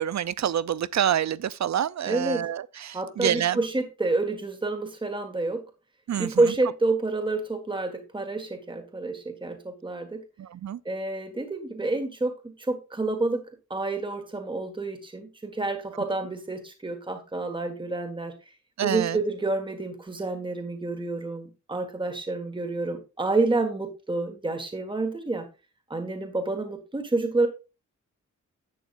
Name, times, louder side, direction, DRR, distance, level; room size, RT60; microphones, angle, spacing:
voice 1, 0.0-3.6 6.1-6.3 10.4-10.8 18.8-19.2, right 10 dB, 65° right, 0.6 m, -27 dB
voice 2, 2.1-2.5 2.9-5.6 6.2-10.2 10.9-13.5 13.7-18.3 18.8-25.5 25.9-27.5, right 2 dB, 15° right, 1.7 m, -28 dB
11.0 x 9.3 x 2.5 m
wide cardioid pair, 155°, 30 cm